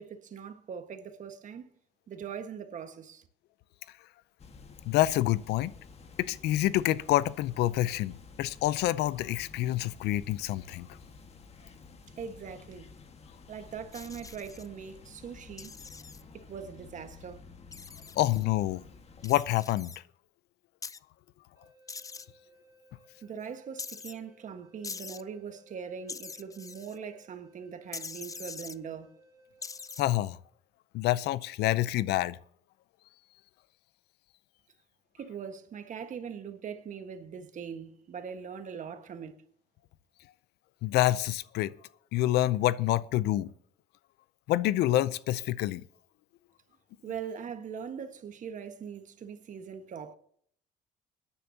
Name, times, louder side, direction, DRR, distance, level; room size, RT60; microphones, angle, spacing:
voice 1, 0.0-1.7 2.1-3.3 12.2-12.9 13.5-15.7 16.3-17.4 23.2-29.2 35.1-39.4 47.0-50.1, right 7 dB, 50° right, 1.5 m, -41 dB
sound 1, 4.4-19.4, left 4 dB, 40° left, 1.6 m, -52 dB
voice 2, 4.9-5.7 6.2-10.9 18.2-18.8 19.2-19.9 30.0-30.4 30.9-32.4 40.8-41.7 42.1-43.5 44.5-45.8, left 15 dB, 80° left, 0.6 m, -27 dB
sound 2, 13.9-14.7 15.6-16.2 17.7-18.4 19.2-20.0 20.8-21.0 21.9-22.3 23.8-24.1 24.8-25.2 26.1-27.0 27.9-28.8 29.6-30.0, left 5 dB, 20° left, 0.5 m, -43 dB
sound 3, 21.5-30.5, right 1 dB, 20° right, 3.6 m, -62 dB
22.5 x 10.0 x 2.8 m
cardioid pair, 110°, 17 cm